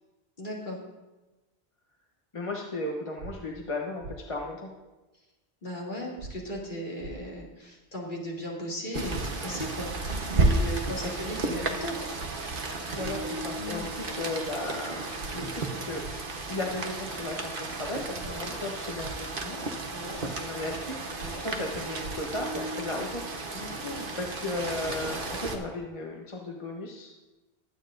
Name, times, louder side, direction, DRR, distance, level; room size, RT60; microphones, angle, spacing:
voice 1, 0.4-0.8 5.6-10.0 10.5-11.9 13.6-13.9 18.2-18.5 19.9-20.2 21.2-21.4 23.5-24.1, equal, 45° left, -4 dB, 2.7 m, -37 dB
voice 2, 2.3-4.7 11.0-11.1 11.4-11.6 12.9-15.1 15.3-16.0 16.5-19.7 20.2-21.0 21.3-23.2 24.2-27.1, left 2 dB, 30° left, -1 dB, 1.0 m, -35 dB
sound 1, 3.2-3.3 4.0-4.2 6.2-6.3 7.0-7.1 9.2-9.3 10.0-10.2 12.2-12.3 13.0-13.2 15.2-15.3 16.0-16.2 18.2-18.3 19.0-19.1 21.2-21.3 22.0-22.1, right 3 dB, 85° right, 1.2 m, -40 dB
Rain, 8.9-25.6, right 2 dB, 55° right, 1.2 m, -33 dB
Harp, 10.9-24.8, right 2 dB, 25° right, 0.4 m, -45 dB
21.5 x 9.1 x 2.6 m, 1.1 s
omnidirectional pair, 1.1 m